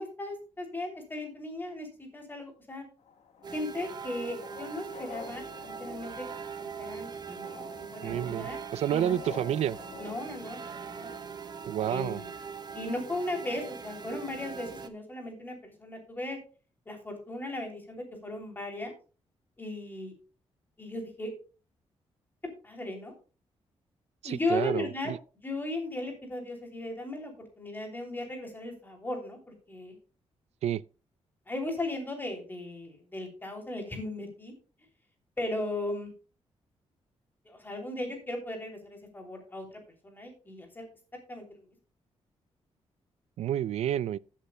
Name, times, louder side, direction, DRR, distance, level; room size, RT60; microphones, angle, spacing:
voice 1, 0.0-2.8 3.5-6.1 6.6-8.6 8.9-9.2 10.0-11.2 11.9-12.3 12.7-16.4 16.9-18.9 19.6-20.1 20.8-21.3 22.6-23.1 24.2-25.1 25.4-30.0 31.5-34.5 35.4-36.1 37.4-40.9 41.3-41.6, left 2 dB, 20° left, 3.1 m, -37 dB
sound 1, 3.0-10.2, left 5 dB, 90° left, 1.3 m, -48 dB
sound 2, 3.4-14.9, right 6 dB, 40° right, 0.8 m, -41 dB
voice 2, 8.0-9.8 11.7-12.2 24.2-25.2 30.6-30.8 43.4-44.2, right 11 dB, 75° right, 0.4 m, -30 dB
15.5 x 8.4 x 2.3 m
wide cardioid pair, 155°, 11 cm